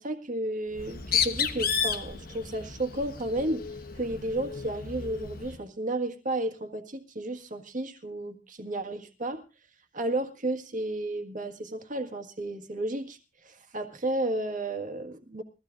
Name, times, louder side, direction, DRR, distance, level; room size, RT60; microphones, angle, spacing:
voice 1, 0.0-3.7 3.9-9.4 9.9-13.2 13.4-15.4, right 1 dB, 45° right, 7 dB, 1.8 m, -32 dB
Bird, 0.7-5.6, left 7 dB, 55° left, 1.3 m, -32 dB
22.0 x 15.0 x 2.6 m, 0.30 s
head